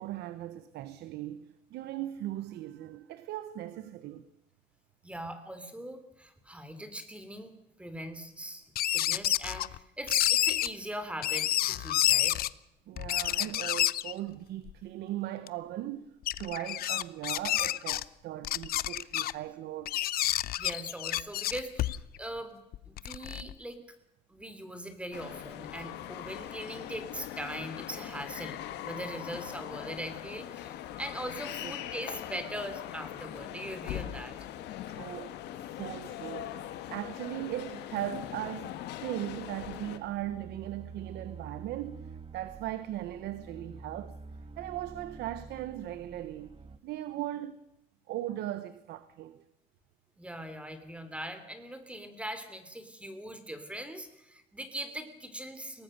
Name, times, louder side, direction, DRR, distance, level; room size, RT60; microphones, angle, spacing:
voice 1, 0.0-4.3 12.9-19.9 31.6-31.7 34.9-44.2 44.6-46.6 46.8-47.6 48.1-49.4, right 13 dB, 80° right, 1.0 m, -38 dB
voice 2, 5.0-7.5 7.8-12.4 20.6-24.0 24.3-28.6 28.8-34.4 50.2-55.8, right 1 dB, 5° right, 3.2 m, -41 dB
sound 1, 8.8-9.8 10.1-10.7 11.2-12.5 13.0-14.1 14.7-14.8 15.5-15.6 16.2-18.0 18.4-19.3 19.9-22.2 22.7-23.5, left 14 dB, 65° left, 0.7 m, -29 dB
sound 2, 25.1-40.0, left 12 dB, 85° left, 1.7 m, -41 dB
sound 3, 39.4-46.8, right 4 dB, 30° right, 1.5 m, -48 dB
23.0 x 18.5 x 6.7 m
cardioid pair, 110°, 17 cm